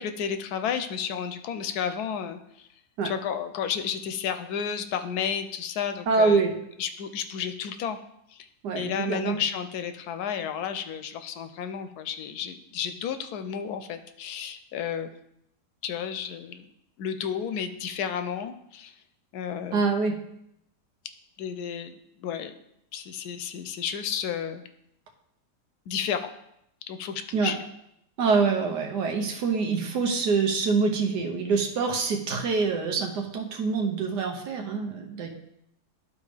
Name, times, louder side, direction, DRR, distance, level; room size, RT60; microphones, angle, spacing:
voice 1, 0.0-2.7 3.0-6.5 6.8-8.0 8.3-8.5 8.8-15.1 15.8-16.6 17.0-18.9 19.3-19.8 21.4-21.9 22.2-22.5 22.9-24.7 25.9-26.3 26.9-27.6, left 8 dB, 75° left, 9 dB, 1.1 m, -32 dB
voice 2, 6.1-6.5 8.6-9.4 19.7-20.2 27.3-27.5 28.2-35.3, right 4 dB, 90° right, 3 dB, 1.5 m, -25 dB
12.0 x 4.2 x 3.3 m, 0.78 s
omnidirectional pair, 1.8 m